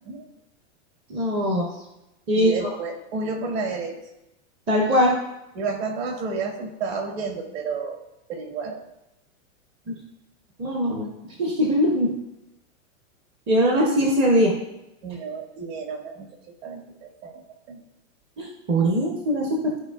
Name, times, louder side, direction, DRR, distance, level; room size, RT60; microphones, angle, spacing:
voice 1, 1.1-1.7 2.3-2.5 4.7-5.2 9.9-10.0 10.6-11.1 11.4-12.1 13.5-14.5 18.4-19.7, equal, 15° right, 0 dB, 0.5 m, -21 dB
voice 2, 2.3-4.0 5.6-8.0 8.3-8.8 15.0-16.3 16.6-17.8, right 4 dB, 50° right, 2 dB, 1.7 m, -31 dB
14.5 x 4.9 x 2.2 m, 0.91 s
supercardioid pair, 160°, 39 cm